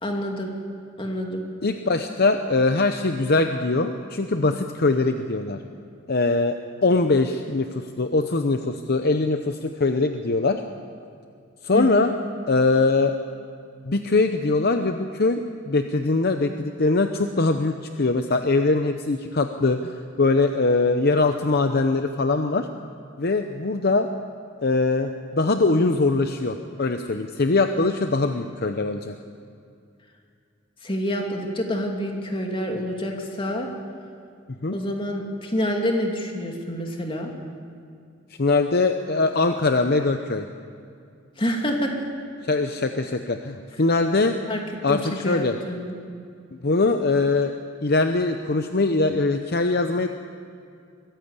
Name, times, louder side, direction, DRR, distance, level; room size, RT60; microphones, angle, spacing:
voice 1, 0.0-0.5 1.0-1.4 11.7-12.1 30.8-33.7 34.7-37.3 41.4-41.9 44.5-44.6 44.9-45.9, equal, 25° left, 1 dB, 2.7 m, -27 dB
voice 2, 1.6-5.6 6.1-6.6 6.8-10.6 11.6-12.1 12.5-13.1 13.9-15.4 15.7-22.7 23.2-24.1 24.6-29.2 34.6-34.8 38.4-40.5 42.5-44.4 44.8-45.6 46.6-47.5 47.8-50.1, left 3 dB, 55° left, 7 dB, 0.8 m, -22 dB
23.0 x 15.0 x 8.3 m, 2.4 s
head